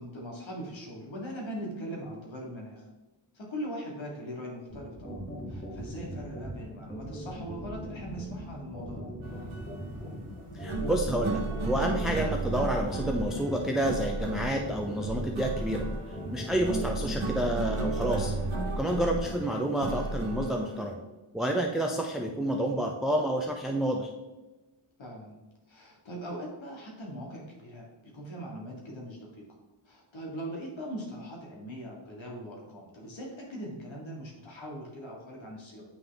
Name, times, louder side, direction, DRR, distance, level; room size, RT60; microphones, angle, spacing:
voice 1, 0.0-2.9 3.3-9.1 16.2-16.5 25.0-25.4 25.7-27.9 28.1-29.4 29.8-35.8, equal, 65° left, -2 dB, 1.6 m, -40 dB
sound 1, 4.7-19.4, equal, 15° left, 2.1 m, -40 dB
sound 2, 9.2-20.9, right 3 dB, 75° right, 1.2 m, -34 dB
voice 2, 10.5-15.9 16.3-18.3 18.8-21.0 21.3-24.1, right 1 dB, ahead, 1 dB, 0.5 m, -29 dB
9.2 x 3.4 x 3.9 m, 1.1 s
wide cardioid pair, 100°, 49 cm